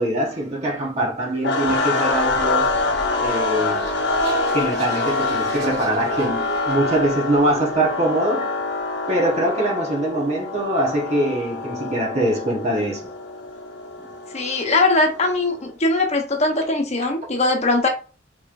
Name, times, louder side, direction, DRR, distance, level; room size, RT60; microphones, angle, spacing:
voice 1, 0.0-2.7 3.2-3.9 4.5-8.6 9.1-13.1, right 1 dB, 35° right, 1.0 m, -23 dB
sound 1, 1.4-15.5, left 3 dB, 65° left, 0.8 m, -26 dB
sound 2, 1.6-9.5, right 3 dB, 60° right, 1.9 m, -34 dB
voice 2, 14.3-17.9, left 2 dB, 35° left, 0.9 m, -20 dB
4.9 x 3.1 x 2.5 m
head